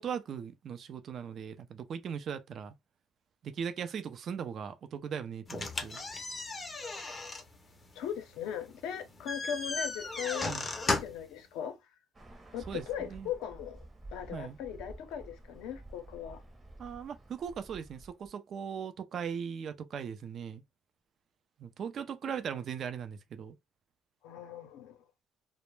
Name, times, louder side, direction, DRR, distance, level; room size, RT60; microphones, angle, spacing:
voice 1, 0.0-2.8 3.4-6.0 10.5-10.7 12.7-13.3 14.3-14.6 16.8-20.6 21.6-23.5, right 7 dB, 50° right, 0.4 m, -39 dB
sound 1, 5.5-11.3, left 3 dB, 25° left, 0.5 m, -36 dB
voice 2, 7.9-10.5 10.9-11.8 12.5-13.8 14.1-16.4 24.2-25.0, left 9 dB, 80° left, 0.6 m, -39 dB
Bird, 12.1-18.3, right 1 dB, 20° right, 0.7 m, -51 dB
2.1 x 2.0 x 3.0 m
cardioid pair, 100°, 0 cm